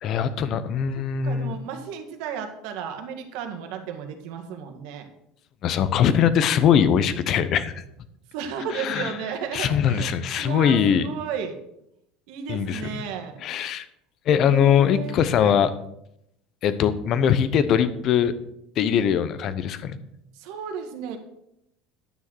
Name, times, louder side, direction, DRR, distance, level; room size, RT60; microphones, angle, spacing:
voice 1, 0.0-1.5 5.6-7.7 8.7-9.1 9.5-11.1 12.5-12.8 13.4-13.9 14.3-15.7 16.6-18.3 18.8-20.0, left 8 dB, 45° left, 13 dB, 0.9 m, -21 dB
voice 2, 0.9-5.1 8.3-10.1 10.4-11.6 12.3-13.4 14.4-15.6 20.3-21.2, right 7 dB, 70° right, 5 dB, 1.8 m, -34 dB
10.5 x 6.3 x 6.3 m, 0.78 s
cardioid pair, 135°, 0 cm